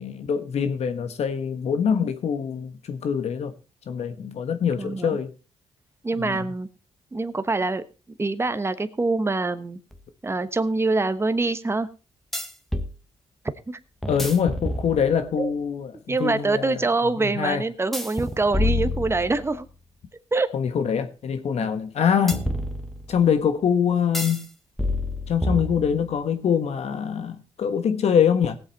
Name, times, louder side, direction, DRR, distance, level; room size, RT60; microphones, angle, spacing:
voice 1, 0.0-3.5 3.9-5.3 6.2-6.5 14.1-16.9 17.2-17.6 20.5-22.5 23.1-24.5 25.3-28.6, left 7 dB, 70° left, 1.4 m, -24 dB
voice 2, 4.8-5.2 6.0-6.7 7.1-7.8 8.2-9.8 10.2-11.9 13.7-13.8 15.4-15.5 16.1-19.7 20.3-20.5 21.6-21.8, right 3 dB, 20° right, 1.1 m, -25 dB
sound 1, 9.9-10.0 12.3-12.9 14.0-15.3 17.9-19.6 22.3-23.3 24.1-24.5 24.8-26.1, left 1 dB, ahead, 1.4 m, -28 dB
17.5 x 7.8 x 4.1 m
cardioid pair, 65°, 11 cm